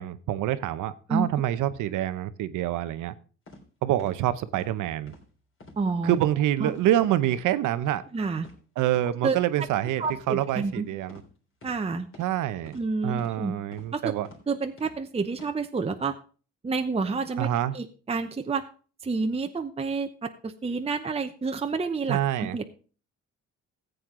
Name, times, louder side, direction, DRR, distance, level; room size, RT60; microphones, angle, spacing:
voice 1, 0.0-3.1 3.8-5.1 6.0-8.0 8.8-11.2 12.2-12.8 13.0-14.3 17.4-17.8 22.1-22.6, right 12 dB, 85° right, 13 dB, 0.8 m, -26 dB
sound 1, 3.5-3.6 4.0-4.2 4.5-4.7 5.1-5.2 5.6-5.8 6.1-6.3 6.7-6.9 7.2-7.4 7.8-8.0 8.4-8.6 8.9-9.1 9.6-9.7 10.0-10.2 10.6-10.7 11.1-11.3 11.6-11.8 12.1-12.3 12.7-12.8 13.2-13.4 13.7-13.9 14.2-14.4 14.8-15.0 15.3-15.5, left 2 dB, 45° left, 3.6 m, -48 dB
voice 2, 5.8-6.2 6.6-6.7 8.1-8.5 9.2-9.4 10.0-10.9 11.6-12.1 12.7-13.5 13.9-14.1 14.5-16.1 16.6-17.5 17.7-18.6 19.0-22.8, right 4 dB, 20° right, 6 dB, 0.8 m, -29 dB
14.5 x 7.9 x 3.8 m, 0.39 s
cardioid pair, 90°, 30 cm